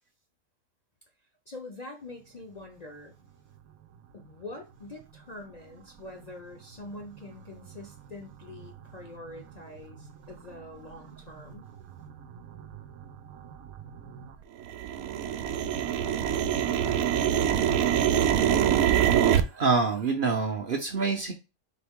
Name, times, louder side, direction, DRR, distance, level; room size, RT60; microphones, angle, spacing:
voice 1, 1.5-3.1 4.1-11.7, left 2 dB, 45° left, 1 dB, 0.6 m, -44 dB
sound 1, 8.6-8.7 9.3-9.4 10.0-10.3 10.8-10.9 11.1-11.7 12.0-14.3 14.6-19.4, right 9 dB, 90° right, 1.0 m, -25 dB
voice 2, 19.2-21.3, right 4 dB, 50° right, 1 dB, 0.7 m, -27 dB
4.2 x 3.3 x 3.6 m, 0.28 s
omnidirectional pair, 1.4 m